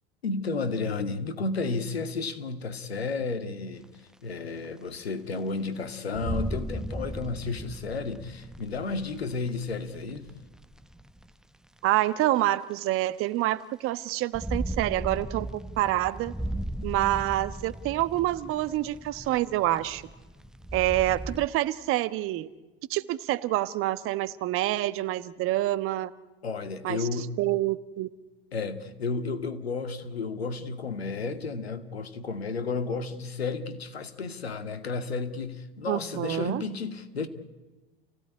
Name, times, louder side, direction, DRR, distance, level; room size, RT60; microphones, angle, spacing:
voice 1, 0.2-3.9 4.2-10.3 26.4-27.3 28.5-37.3, left 4 dB, 85° left, 2.1 m, -32 dB
sound 1, 3.8-3.9 4.6-4.7 5.4-5.5 6.1-11.3 12.2-12.3 14.1-21.5, right 1 dB, ahead, 0.7 m, -37 dB
voice 2, 11.8-16.3 16.8-20.0 20.7-22.5 22.9-26.1 26.8-28.1 35.9-36.6, right 15 dB, 45° right, 1.2 m, -27 dB
30.0 x 16.5 x 9.8 m
hypercardioid pair, 85°, 30 cm